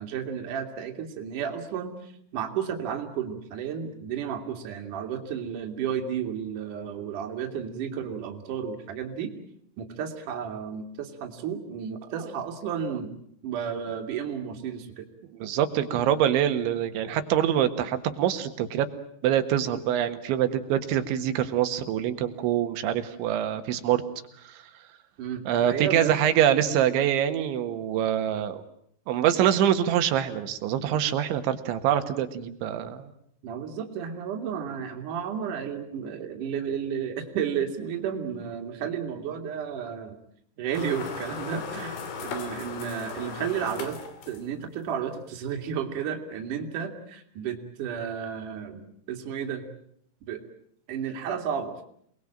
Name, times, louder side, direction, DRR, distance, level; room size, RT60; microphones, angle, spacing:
voice 1, 0.0-9.3 9.8-13.1 13.4-15.1 25.2-26.2 33.4-40.2 40.6-41.9 42.2-44.0 44.3-49.7 50.3-50.4 50.9-51.8, right 8 dB, 50° right, 4 dB, 3.5 m, -32 dB
voice 2, 15.4-18.9 19.2-24.0 25.5-28.6 29.1-33.1, right 10 dB, 85° right, 9 dB, 3.9 m, -25 dB
sound 1, 40.7-44.7, left 6 dB, 80° left, 5.1 m, -37 dB
28.5 x 20.5 x 8.8 m, 0.68 s
omnidirectional pair, 5.2 m